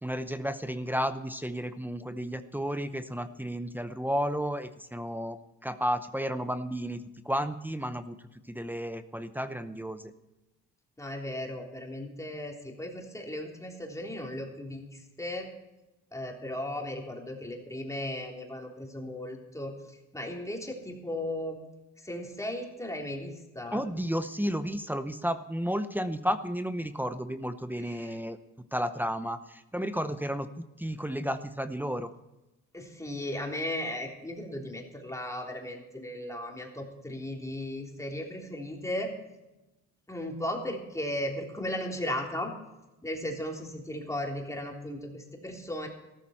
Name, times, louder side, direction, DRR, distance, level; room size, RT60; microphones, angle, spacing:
voice 1, 0.0-8.2 8.5-10.1 23.7-28.4 28.7-30.5 30.8-32.1, equal, 5° right, 9 dB, 0.8 m, -32 dB
voice 2, 11.0-15.5 16.1-19.7 20.1-21.6 22.0-23.8 27.8-28.2 32.7-39.1 40.1-42.5 43.0-45.9, left 1 dB, 10° left, 0 dB, 3.4 m, -36 dB
14.5 x 13.0 x 4.4 m, 1.0 s
cardioid pair, 90°, 30 cm